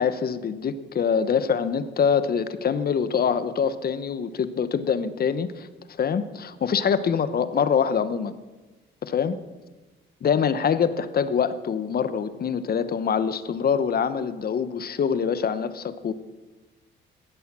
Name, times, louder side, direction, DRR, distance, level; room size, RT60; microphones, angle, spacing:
voice 1, 0.0-8.4 9.0-9.4 10.2-16.1, left 7 dB, 50° left, 13 dB, 1.0 m, -24 dB
16.0 x 12.5 x 6.2 m, 1.2 s
cardioid pair, 90°, 20 cm